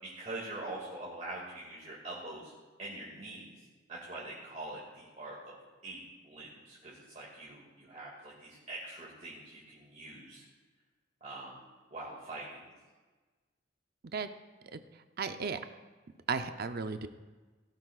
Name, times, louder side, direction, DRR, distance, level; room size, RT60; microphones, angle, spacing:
voice 1, 0.0-2.5 2.8-3.5 3.9-5.6 5.8-10.4 11.2-11.6 11.9-12.6, right 2 dB, 40° right, -6 dB, 2.2 m, -44 dB
voice 2, 15.2-15.6 16.3-17.1, right 5 dB, 55° right, 9 dB, 0.6 m, -34 dB
17.5 x 12.0 x 2.4 m, 1.3 s
head